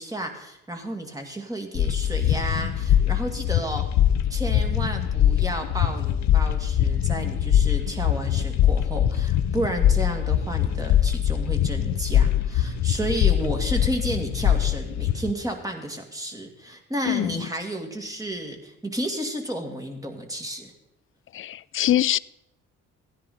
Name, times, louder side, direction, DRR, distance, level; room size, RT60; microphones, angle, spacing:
voice 1, 0.0-3.9 4.3-20.7, right 1 dB, 10° right, 4 dB, 2.2 m, -32 dB
sound 1, 1.8-15.3, left 10 dB, 65° left, 0.7 m, -22 dB
voice 2, 17.0-17.5 21.3-22.2, left 12 dB, 45° left, 20 dB, 0.4 m, -23 dB
15.5 x 10.5 x 4.3 m, 0.87 s
cardioid pair, 90°, 30 cm